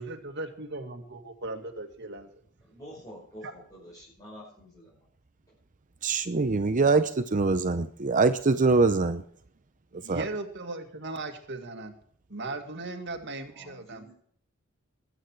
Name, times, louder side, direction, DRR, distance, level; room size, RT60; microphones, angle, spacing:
voice 1, 0.0-2.3 3.4-3.5 9.9-12.0 12.3-14.1, right 2 dB, 55° right, 5 dB, 2.2 m, -37 dB
voice 2, 2.6-5.1 13.5-14.1, equal, 20° left, -5 dB, 5.6 m, -48 dB
voice 3, 6.0-9.2 10.1-10.2, right 3 dB, 40° right, 11 dB, 0.7 m, -23 dB
21.0 x 9.0 x 4.7 m, 0.62 s
head